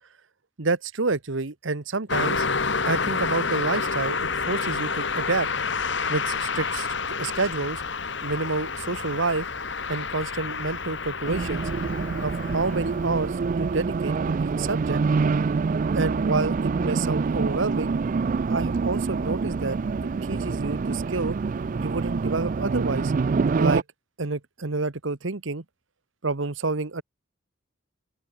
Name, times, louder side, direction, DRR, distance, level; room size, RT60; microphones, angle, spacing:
voice 1, 0.6-2.5 2.8-5.5 6.1-7.8 8.2-9.4 9.9-11.7 12.2-15.0 15.9-17.9 18.5-19.8 20.2-21.4 21.8-23.1 23.6-23.8 24.2-25.6 26.2-27.0, right 3 dB, 70° right, 1.2 m, -28 dB
Car passing by, 2.1-13.5, left 4 dB, 60° left, 2.6 m, -29 dB
Race car auto racing, 11.2-23.8, right 4 dB, 40° right, 0.3 m, -26 dB
open air
head